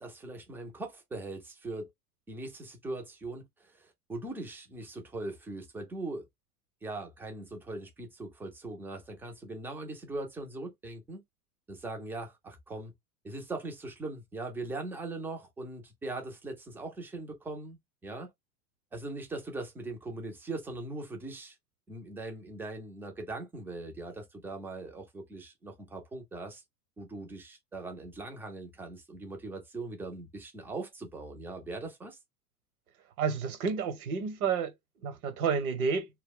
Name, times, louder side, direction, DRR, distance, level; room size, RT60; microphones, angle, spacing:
voice 1, 0.0-1.9 2.3-6.3 6.8-11.2 11.7-12.9 13.2-18.3 18.9-21.6 21.9-26.6 27.0-32.2, right 2 dB, 5° right, 0.4 m, -40 dB
voice 2, 33.2-34.7 35.0-36.1, right 6 dB, 65° right, 1.0 m, -30 dB
2.2 x 2.1 x 3.6 m
hypercardioid pair, 95°, 46 cm